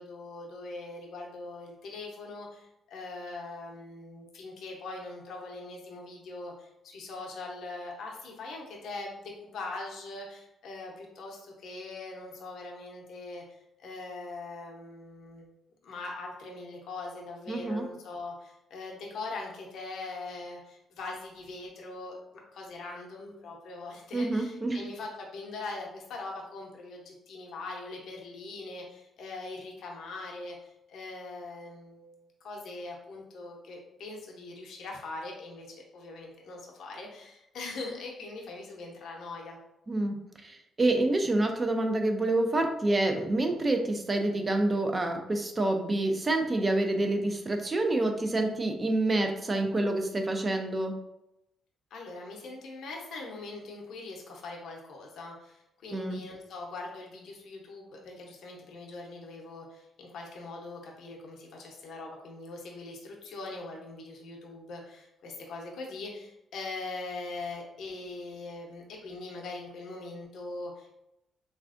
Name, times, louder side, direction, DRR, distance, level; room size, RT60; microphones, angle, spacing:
voice 1, 0.0-15.5 15.8-22.2 22.5-39.6 51.9-70.9, left 3 dB, 70° left, -1 dB, 0.7 m, -41 dB
voice 2, 17.5-17.8 24.1-24.8 39.9-40.2 40.4-51.0 55.9-56.2, right 2 dB, 30° right, 4 dB, 0.4 m, -27 dB
3.3 x 2.4 x 2.4 m, 0.86 s
cardioid pair, 90°, 0 cm